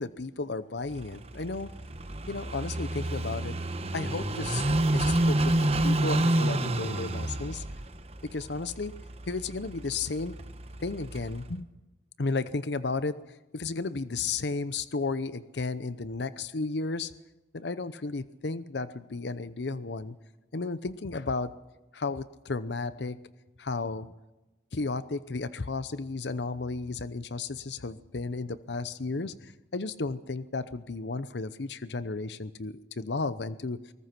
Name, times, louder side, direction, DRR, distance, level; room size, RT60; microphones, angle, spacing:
voice 1, 0.0-1.7 2.3-3.6 3.9-4.6 4.9-7.6 8.2-8.9 9.3-10.4 10.8-11.7 12.2-17.1 17.5-20.2 20.5-21.5 21.9-23.2 23.6-24.1 24.7-33.8, left 3 dB, 75° left, 14 dB, 0.7 m, -33 dB
Car passing by / Idling, 0.9-11.5, right 1 dB, 35° right, 1.1 m, -30 dB
22.5 x 19.5 x 6.0 m, 1.1 s
head